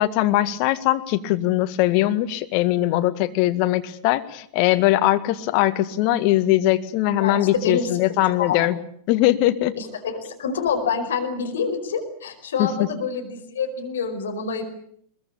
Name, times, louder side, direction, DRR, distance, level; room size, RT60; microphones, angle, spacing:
voice 1, 0.0-8.8 9.1-9.8 12.6-12.7, left 15 dB, 45° left, 9 dB, 1.7 m, -21 dB
voice 2, 7.2-8.6 9.8-14.6, left 5 dB, 65° left, 5 dB, 5.0 m, -27 dB
22.0 x 22.0 x 8.8 m, 0.64 s
figure-of-eight pair, 90°, 0 cm